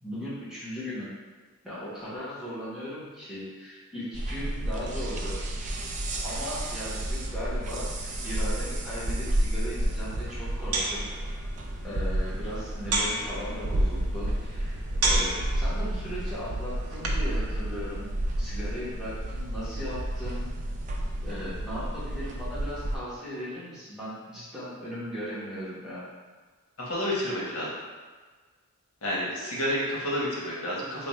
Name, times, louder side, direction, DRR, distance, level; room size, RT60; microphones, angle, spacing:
voice 1, 0.0-1.1 1.6-5.4 6.2-11.1 11.8-20.6 21.2-26.0, equal, 5° right, -11 dB, 1.1 m, -37 dB
sound 1, 4.1-23.0, right 1 dB, 35° right, 0.3 m, -31 dB
sound 2, 9.8-17.4, right 2 dB, 85° right, 0.6 m, -34 dB
voice 2, 26.8-27.7 29.0-31.1, equal, 75° left, -6 dB, 1.1 m, -30 dB
3.4 x 2.2 x 4.2 m, 1.4 s
head